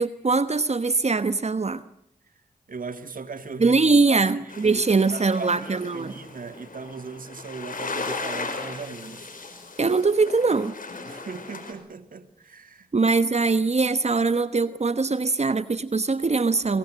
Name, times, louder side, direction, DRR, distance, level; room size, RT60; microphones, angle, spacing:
voice 1, 0.0-1.8 3.6-6.1 9.8-10.7 12.9-16.8, right 4 dB, 45° right, 1.2 m, -22 dB
voice 2, 2.7-3.8 4.1-9.3 11.1-12.9, right 4 dB, 65° right, 2.1 m, -38 dB
sound 1, 4.5-11.7, left 4 dB, 65° left, 5.2 m, -37 dB
25.0 x 22.5 x 7.6 m
cardioid pair, 40°, 15 cm